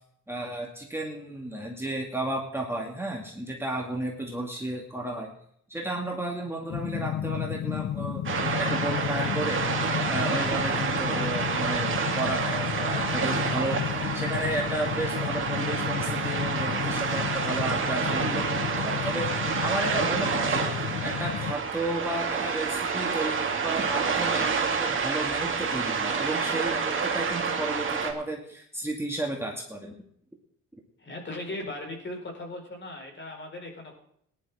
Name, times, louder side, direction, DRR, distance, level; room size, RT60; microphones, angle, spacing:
voice 1, 0.3-5.3 5.7-13.9 14.1-29.9, right 1 dB, 10° right, -1 dB, 2.2 m, -33 dB
sound 1, 6.7-21.6, left 11 dB, 60° left, 0.7 m, -32 dB
sound 2, 8.2-28.1, right 5 dB, 40° right, 2.3 m, -28 dB
voice 2, 31.0-33.9, left 2 dB, 40° left, 1 dB, 4.8 m, -38 dB
18.0 x 11.0 x 3.7 m, 0.67 s
cardioid pair, 90°, 30 cm